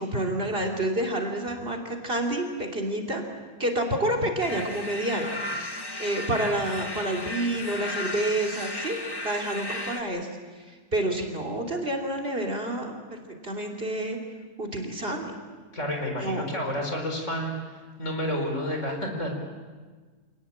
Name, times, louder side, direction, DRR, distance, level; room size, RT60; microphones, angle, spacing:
voice 1, 0.0-3.2 3.6-5.3 6.0-14.2 14.6-15.3 16.2-16.5, right 1 dB, 40° right, 4 dB, 3.2 m, -29 dB
sound 1, 4.4-10.0, left 1 dB, 15° left, 1.5 m, -35 dB
voice 2, 15.7-17.5 18.0-19.3, equal, 55° left, 3 dB, 5.0 m, -30 dB
27.0 x 19.0 x 8.7 m, 1.4 s
omnidirectional pair, 1.5 m